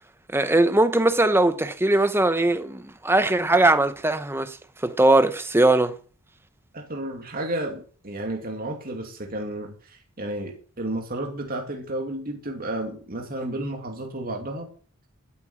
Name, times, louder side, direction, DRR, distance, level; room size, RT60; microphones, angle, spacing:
voice 1, 0.3-4.6 4.8-5.9, right 2 dB, 10° right, 0.9 m, -20 dB
voice 2, 6.7-14.7, right 1 dB, 45° right, 2.6 m, -32 dB
12.5 x 8.7 x 7.3 m
head